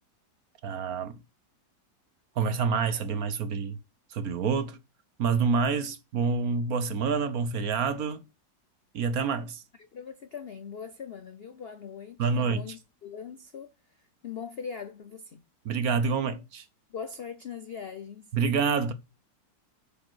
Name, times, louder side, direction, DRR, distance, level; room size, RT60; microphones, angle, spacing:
voice 1, 0.6-1.2 2.4-3.8 4.1-4.8 5.2-8.2 8.9-9.6 12.2-12.6 15.6-16.6 18.3-18.9, right 5 dB, 60° right, 1.2 m, -27 dB
voice 2, 9.8-15.4 16.9-18.3, left 6 dB, 70° left, 0.5 m, -41 dB
8.8 x 5.3 x 6.2 m
omnidirectional pair, 1.9 m